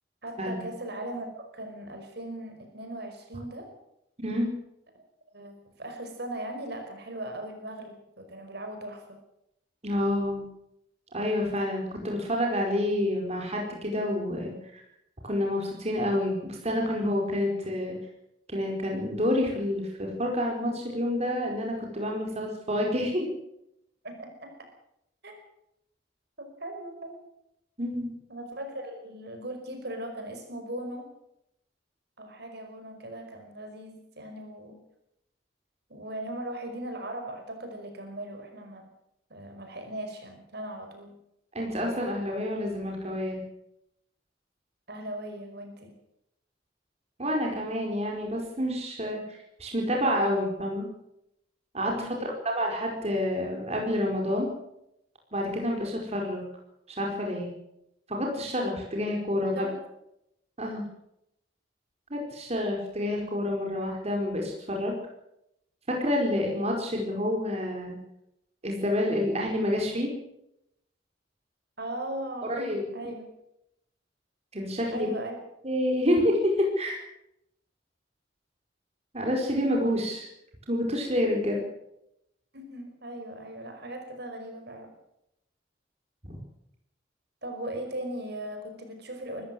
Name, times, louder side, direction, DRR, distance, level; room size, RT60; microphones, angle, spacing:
voice 1, 0.2-3.7 4.9-9.2 24.0-24.7 25.2-25.4 26.4-27.2 28.3-31.1 32.2-34.8 35.9-38.9 39.3-41.1 44.9-45.9 51.9-52.3 59.6-59.8 71.8-73.2 74.9-75.4 82.5-84.9 87.4-89.5, right 1 dB, 60° right, 5 dB, 5.3 m, -38 dB
voice 2, 9.8-10.5 11.1-14.8 15.2-18.0 18.5-23.3 27.8-28.2 41.5-43.4 47.2-50.9 51.7-54.5 55.3-56.4 56.9-57.5 58.1-59.7 60.6-60.8 62.1-64.9 65.9-68.0 68.6-70.1 72.5-72.8 74.5-75.1 75.6-77.0 79.1-80.3 80.7-81.6 86.2-86.4, left 1 dB, 35° right, 0 dB, 4.8 m, -28 dB
24.5 x 14.5 x 7.7 m, 0.81 s
head